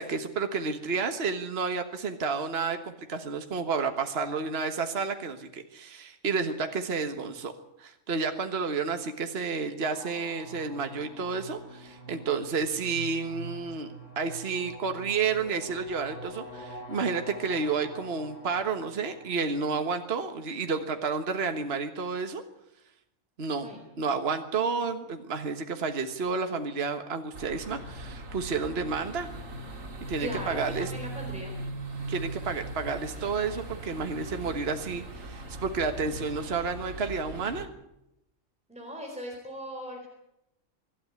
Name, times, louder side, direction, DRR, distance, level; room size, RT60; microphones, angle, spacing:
voice 1, 0.0-7.5 7.8-13.9 14.1-22.4 23.4-23.7 24.0-29.3 30.1-30.9 32.1-37.7, right 5 dB, 50° right, 6 dB, 1.6 m, -31 dB
sound 1, 9.8-20.9, right 1 dB, 60° left, 7.1 m, -45 dB
sound 2, 27.3-37.7, right 2 dB, 65° right, 2.8 m, -39 dB
voice 2, 30.2-31.6 38.7-40.1, equal, 5° right, 1 dB, 4.2 m, -39 dB
25.0 x 12.5 x 9.7 m, 0.84 s
omnidirectional pair, 1.4 m